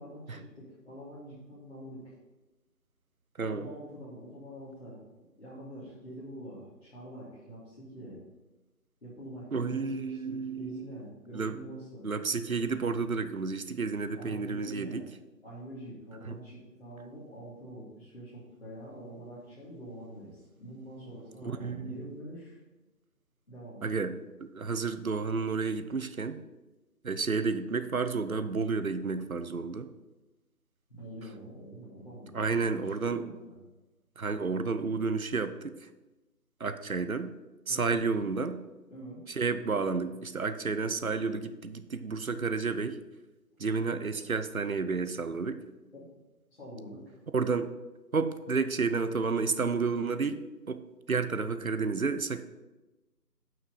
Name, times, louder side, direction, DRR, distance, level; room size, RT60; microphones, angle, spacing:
voice 1, 0.0-2.1 3.4-5.0 5.4-8.2 9.0-12.1 14.1-15.1 15.4-22.6 23.5-23.9 30.9-33.6 37.7-38.2 38.9-39.2 45.9-46.1 46.5-47.2, equal, 40° left, -11 dB, 2.9 m, -45 dB
voice 2, 3.4-3.7 9.5-10.8 11.3-11.5 12.0-15.0 16.3-16.4 21.6-22.0 23.8-26.4 27.0-29.9 32.3-33.2 34.2-35.9 36.6-37.3 37.7-38.6 39.3-43.0 43.6-45.6 47.3-47.7 48.1-50.4 50.7-50.8 51.1-52.4, right 4 dB, 55° right, 10 dB, 0.6 m, -31 dB
7.8 x 5.9 x 5.4 m, 1.1 s
figure-of-eight pair, 175°, 49 cm